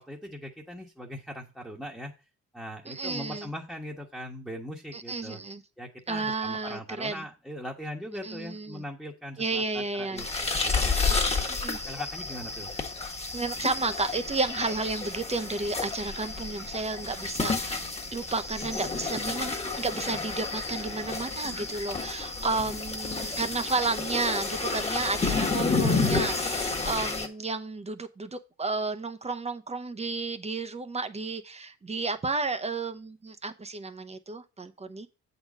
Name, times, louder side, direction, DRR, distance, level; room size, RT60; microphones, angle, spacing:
voice 1, 0.0-2.1 2.5-5.4 5.8-11.5 11.9-12.7, equal, ahead, 1.3 m, -40 dB
voice 2, 2.9-3.5 4.9-5.6 6.1-7.2 8.2-8.8 9.4-10.2 10.7-10.9 11.5-11.8 13.3-17.8 18.1-35.1, right 3 dB, 20° right, 0.8 m, -32 dB
sound 1, 10.2-27.3, left 4 dB, 20° left, 1.5 m, -30 dB
7.8 x 4.1 x 6.2 m
cardioid pair, 90°, 30 cm